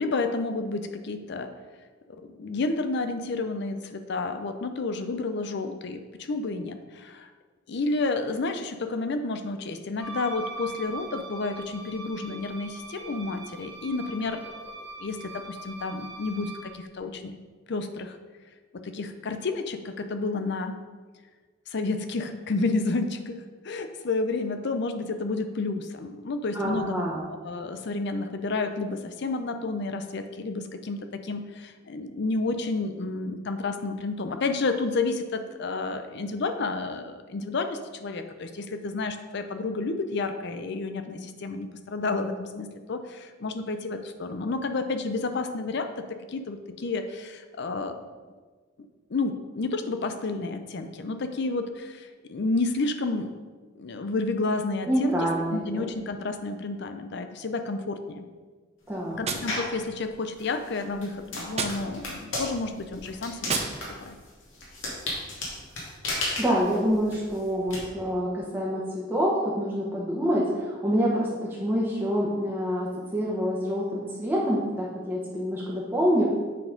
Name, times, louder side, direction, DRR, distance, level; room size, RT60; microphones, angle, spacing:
voice 1, 0.0-1.5 2.4-7.3 7.7-14.4 15.0-17.3 17.7-18.2 18.8-20.8 21.7-23.4 23.6-27.0 27.4-45.9 46.3-48.1 49.1-53.3 53.8-55.1 55.5-58.2 59.1-63.6 64.0-64.2, left 3 dB, 60° left, 8 dB, 0.5 m, -30 dB
Wind instrument woodwind instrument, 10.0-16.8, right 2 dB, 60° right, 1.5 m, -41 dB
voice 2, 26.5-27.3 54.9-55.9 58.9-59.2 66.4-72.9 73.1-76.2, equal, 10° right, -6 dB, 1.1 m, -26 dB
Gunshot gunfire, 59.2-60.3 61.5-62.4 63.4-64.3, right 4 dB, 35° right, 0.7 m, -34 dB
sound 1, 59.5-59.8 60.4-67.8, left 2 dB, 75° left, 2.2 m, -34 dB
8.3 x 4.1 x 5.2 m, 1.4 s
head